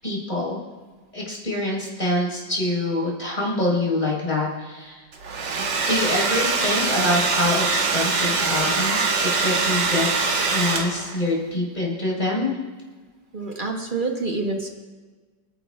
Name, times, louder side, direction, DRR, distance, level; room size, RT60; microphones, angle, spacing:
voice 1, 0.0-0.6 1.1-5.0 5.8-10.1 10.4-12.5, left 1 dB, 20° left, -4 dB, 4.4 m, -25 dB
Domestic sounds home sounds, 5.1-11.2, right 4 dB, 70° right, 2.0 m, -23 dB
voice 2, 13.3-14.7, right 3 dB, 35° right, 2 dB, 1.0 m, -27 dB
28.0 x 10.5 x 2.4 m, 1.4 s
omnidirectional pair, 2.0 m